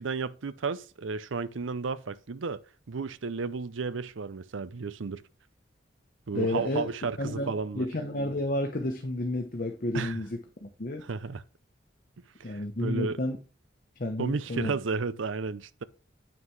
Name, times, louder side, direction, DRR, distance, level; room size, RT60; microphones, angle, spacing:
voice 1, 0.0-2.6 2.9-5.2 6.3-7.9 9.9-10.2 11.0-11.4 12.4-13.2 14.2-15.8, right 4 dB, 90° right, 0.6 m, -33 dB
voice 2, 6.3-6.8 7.2-11.0 12.4-13.4 14.0-14.7, left 1 dB, 45° left, 0.9 m, -31 dB
9.2 x 5.9 x 3.2 m
head